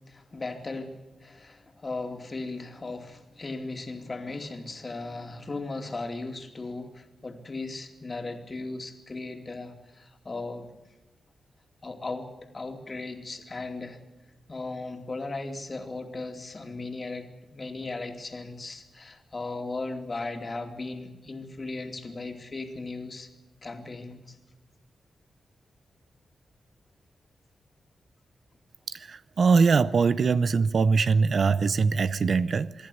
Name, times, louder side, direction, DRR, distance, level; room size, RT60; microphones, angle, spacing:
voice 1, 0.1-10.7 11.8-12.3 12.5-14.0 14.5-23.3 23.6-24.4, left 3 dB, 35° left, 2.7 m, -37 dB
voice 2, 28.9-32.9, right 5 dB, 60° right, 0.6 m, -22 dB
25.5 x 11.0 x 9.8 m
cardioid pair, 70°, 0 cm